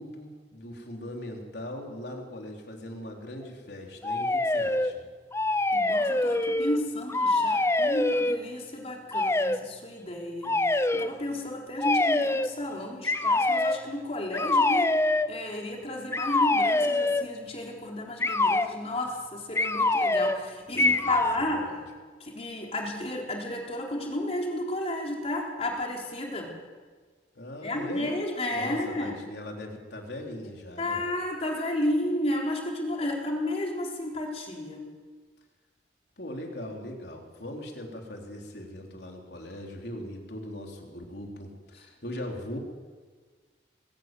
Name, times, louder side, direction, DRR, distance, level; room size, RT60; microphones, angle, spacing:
voice 1, 0.0-5.1 20.7-21.2 21.5-21.8 27.4-28.1 28.5-31.0 36.2-42.6, left 1 dB, 70° left, 1 dB, 3.8 m, -40 dB
Slide Whistle, 4.0-4.9 5.3-6.8 7.1-8.4 9.1-9.6 10.4-11.1 11.8-12.5 13.0-13.8 14.3-15.3 16.1-17.3 18.2-18.7 19.5-20.4 20.8-21.4, left 2 dB, 15° left, 0.7 m, -25 dB
voice 2, 5.7-10.6 10.9-14.9 15.3-21.6 22.2-26.5 27.6-29.2 30.8-34.9, left 1 dB, 35° left, 0 dB, 4.1 m, -32 dB
21.5 x 14.0 x 9.2 m, 1.5 s
head